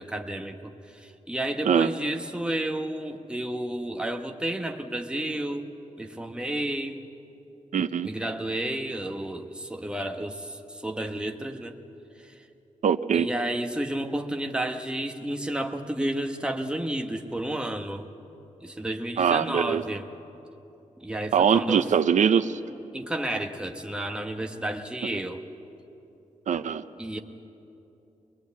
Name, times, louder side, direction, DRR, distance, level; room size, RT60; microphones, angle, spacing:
voice 1, 0.0-5.7 6.0-7.0 8.0-11.8 12.2-12.4 13.1-18.1 18.6-20.0 21.0-21.9 22.9-25.4 27.0-27.2, right 1 dB, 5° right, 4 dB, 1.2 m, -31 dB
voice 2, 7.7-8.1 12.8-13.3 19.2-19.8 21.3-22.6 26.5-26.8, right 7 dB, 70° right, 11 dB, 0.7 m, -22 dB
22.0 x 21.0 x 8.4 m, 2.9 s
wide cardioid pair, 155°, 13 cm